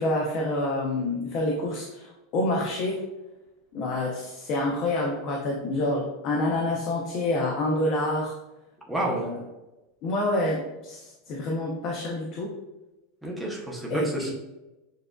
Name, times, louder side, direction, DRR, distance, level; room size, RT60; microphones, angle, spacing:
voice 1, 0.0-3.0 3.7-8.3 9.0-9.4 10.0-12.5 13.9-14.3, left 1 dB, 35° left, -2 dB, 0.6 m, -27 dB
voice 2, 8.9-9.3 13.2-14.3, right 1 dB, ahead, -3 dB, 0.7 m, -30 dB
7.2 x 2.5 x 2.3 m, 0.99 s
supercardioid pair, 175°, 0 cm